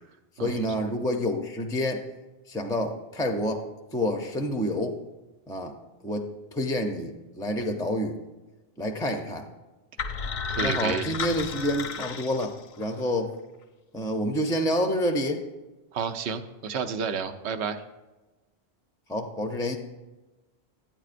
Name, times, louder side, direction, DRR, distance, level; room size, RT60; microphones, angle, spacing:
voice 1, 0.4-2.0 2.5-3.6 3.9-5.0 5.5-5.7 6.0-8.2 8.8-9.5 10.6-13.3 13.9-15.4 19.1-19.8, equal, 5° left, 4 dB, 0.3 m, -28 dB
sound 1, 10.0-13.0, left 6 dB, 55° left, 0.6 m, -33 dB
voice 2, 10.5-11.1 15.9-17.8, right 6 dB, 80° right, 8 dB, 0.9 m, -30 dB
12.0 x 8.9 x 2.5 m, 1.1 s
omnidirectional pair, 1.1 m